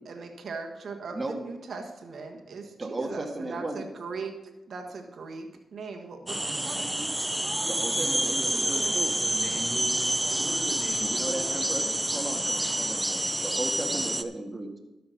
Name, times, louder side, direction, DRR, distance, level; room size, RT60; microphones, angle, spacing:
voice 1, 0.1-4.3 4.7-6.9, right 4 dB, 65° right, 3 dB, 1.5 m, -39 dB
voice 2, 2.8-3.9 7.6-9.1 11.0-11.8 12.1-14.8, right 2 dB, 35° right, 3 dB, 1.8 m, -35 dB
sound 1, 6.3-14.2, right 1 dB, 15° right, 0.7 m, -28 dB
voice 3, 7.6-11.9 13.9-14.1, equal, 30° left, 0 dB, 3.4 m, -40 dB
12.5 x 5.9 x 5.9 m, 0.99 s
cardioid pair, 55°, 0 cm